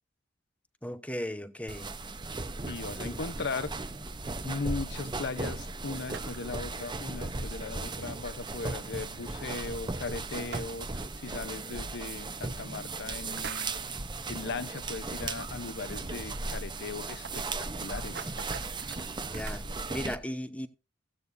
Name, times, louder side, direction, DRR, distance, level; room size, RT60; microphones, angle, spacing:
voice 1, 0.8-2.0 3.0-3.2 19.2-20.7, equal, 5° left, 0.8 m, -37 dB
sound 1, 1.7-20.2, right 3 dB, 25° right, 0.7 m, -37 dB
voice 2, 2.7-3.7 4.4-13.8 14.3-18.3, left 4 dB, 60° left, 0.7 m, -38 dB
sound 2, 5.9-6.6 8.2-8.3 10.3-10.9 12.1-12.2 13.2-13.9 15.0-15.1 15.4-15.5 15.9-16.0 16.2-16.3 16.8-19.6, right 6 dB, 60° right, 1.1 m, -43 dB
16.0 x 8.1 x 2.6 m
head